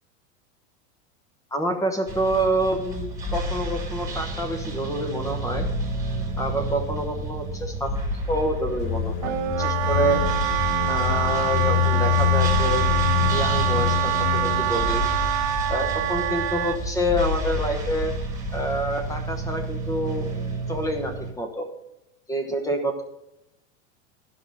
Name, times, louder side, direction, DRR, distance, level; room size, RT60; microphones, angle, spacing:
voice 1, 1.5-5.6 6.4-7.9 8.3-10.2 10.9-12.8 13.3-15.0 15.7-18.1 18.5-20.3 20.7-21.7 22.3-23.0, equal, 10° left, 6 dB, 1.0 m, -27 dB
sound 1, 2.1-21.3, right 1 dB, 10° right, 1.7 m, -30 dB
sound 2, 8.8-14.8, left 11 dB, 75° left, 0.5 m, -25 dB
Wind instrument woodwind instrument, 9.2-16.8, right 13 dB, 50° right, 0.8 m, -26 dB
11.5 x 5.6 x 6.3 m, 0.89 s
supercardioid pair, 155°, 36 cm